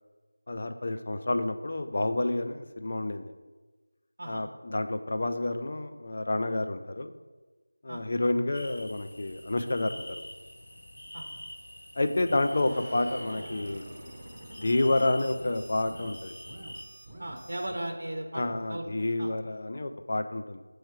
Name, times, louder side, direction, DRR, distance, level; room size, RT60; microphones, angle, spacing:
voice 1, 0.5-3.3 4.3-7.1 7.8-10.2 12.0-13.9 14.6-16.3 18.3-20.6, left 2 dB, 40° left, 7 dB, 0.4 m, -29 dB
sound 1, 8.5-16.8, left 1 dB, 60° left, 0.7 m, -46 dB
sound 2, 12.4-17.9, right 1 dB, 15° right, 0.6 m, -46 dB
voice 2, 17.2-18.4 18.7-18.9 19.2-19.3, right 1 dB, 65° right, 2 dB, 0.7 m, -36 dB
7.4 x 3.1 x 4.7 m, 1.3 s
figure-of-eight pair, 175°, 0 cm